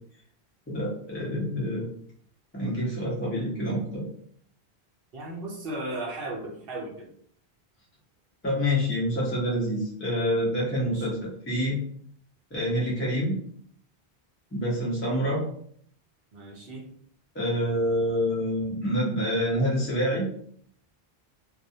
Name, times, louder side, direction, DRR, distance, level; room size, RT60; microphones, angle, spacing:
voice 1, 0.7-1.9 2.5-4.1 8.4-11.8 12.5-13.4 14.5-15.4 17.3-20.3, equal, 15° left, -5 dB, 0.5 m, -27 dB
voice 2, 5.1-7.1 10.8-11.1 16.3-16.9, right 2 dB, 65° right, -1 dB, 0.8 m, -36 dB
2.3 x 2.1 x 2.6 m, 0.62 s
omnidirectional pair, 1.1 m